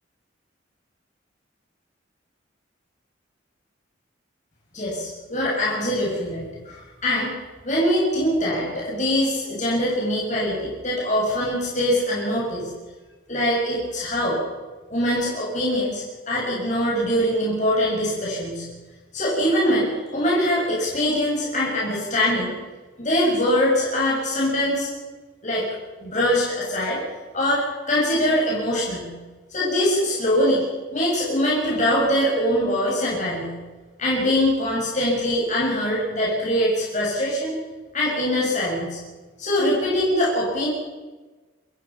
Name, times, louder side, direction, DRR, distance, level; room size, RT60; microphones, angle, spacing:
voice 1, 4.7-7.3 7.6-12.7 13.3-14.4 14.9-18.6 19.1-22.6 23.0-24.9 25.4-25.6 26.0-27.0 27.3-29.1 29.5-30.6 30.9-33.5 34.0-37.6 37.9-39.0 39.4-40.7, equal, 40° left, -5 dB, 7.5 m, -23 dB
25.5 x 21.5 x 6.0 m, 1.2 s
head